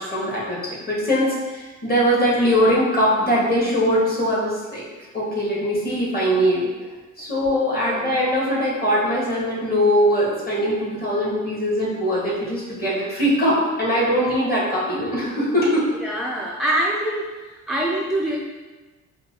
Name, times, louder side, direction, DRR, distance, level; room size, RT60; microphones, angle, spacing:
voice 1, 0.0-4.8 5.1-6.7 7.2-15.8, equal, 30° left, -6 dB, 1.4 m, -21 dB
voice 2, 7.8-8.1 15.9-17.2 17.5-18.4, right 1 dB, ahead, -4 dB, 0.3 m, -25 dB
5.2 x 2.2 x 2.9 m, 1.3 s
cardioid pair, 115°, 31 cm